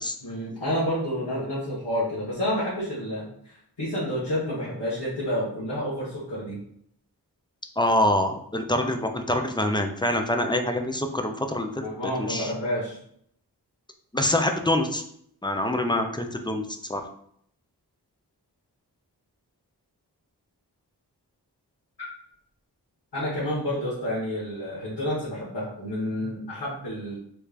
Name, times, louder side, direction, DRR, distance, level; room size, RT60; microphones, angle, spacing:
voice 1, 0.2-6.6 11.8-13.0 23.1-27.2, equal, 85° left, -10 dB, 1.3 m, -29 dB
voice 2, 7.8-11.8 12.2-12.5 14.1-15.0 15.4-16.6 16.9-17.0, left 1 dB, 10° left, 5 dB, 0.4 m, -25 dB
3.2 x 2.4 x 3.3 m, 0.68 s
wide cardioid pair, 50°, 40 cm